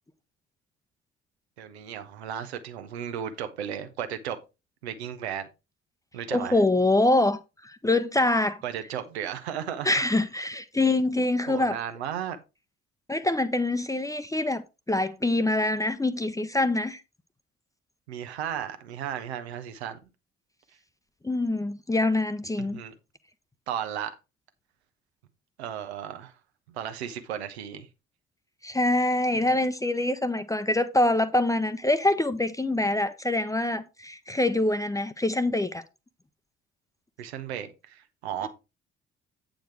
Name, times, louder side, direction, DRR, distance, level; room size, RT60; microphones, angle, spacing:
voice 1, 1.6-4.4 4.8-5.5 6.1-6.5 8.6-9.9 11.5-12.4 18.1-20.0 22.6-22.9 23.7-24.1 25.6-26.3 26.7-27.9 29.4-29.5 37.2-38.5, right 9 dB, 75° right, 1.0 m, -35 dB
voice 2, 6.3-8.6 9.8-11.8 13.1-14.6 14.9-17.0 21.2-22.8 28.6-35.8, left 2 dB, 10° left, 0.8 m, -25 dB
8.9 x 5.1 x 4.6 m
figure-of-eight pair, 45°, 33 cm